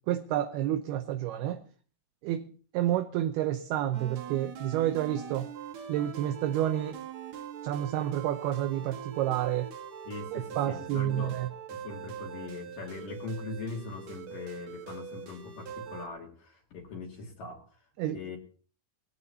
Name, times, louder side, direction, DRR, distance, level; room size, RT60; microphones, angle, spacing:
voice 1, 0.1-1.7 2.2-5.5 5.9-7.0 7.6-9.7 10.3-11.5 18.0-18.2, right 12 dB, 75° right, 2.4 m, -30 dB
sound 1, 3.9-16.1, right 8 dB, 55° right, 2.0 m, -43 dB
voice 2, 10.0-11.4 11.7-17.8 18.1-18.4, left 3 dB, 55° left, 3.4 m, -41 dB
20.5 x 16.5 x 2.9 m
omnidirectional pair, 5.3 m